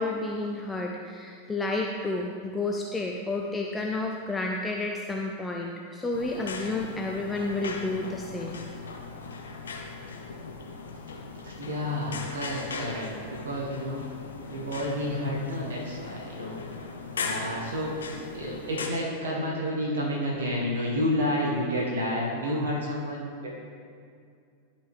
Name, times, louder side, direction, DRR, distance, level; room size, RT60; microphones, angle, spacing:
voice 1, 0.0-8.6, left 2 dB, 10° left, 0 dB, 0.5 m, -31 dB
sound 1, 6.1-18.9, left 4 dB, 70° left, 0.7 m, -38 dB
voice 2, 11.4-14.1 14.5-16.6 17.2-18.0 18.3-23.5, equal, 65° right, -3 dB, 1.4 m, -30 dB
11.0 x 4.4 x 3.5 m, 2.3 s
figure-of-eight pair, 90°, 0 cm